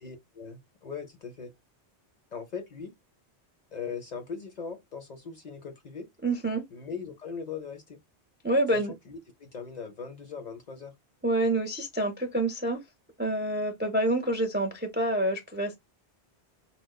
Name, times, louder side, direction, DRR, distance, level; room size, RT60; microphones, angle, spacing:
voice 1, 0.0-1.5 2.3-2.9 3.7-6.1 6.7-8.0 8.7-10.9, left 5 dB, 50° left, 0.6 m, -40 dB
voice 2, 6.2-6.6 8.4-8.9 11.2-12.8 13.2-15.8, right 1 dB, 15° right, 0.4 m, -27 dB
4.8 x 2.0 x 2.2 m
omnidirectional pair, 1.1 m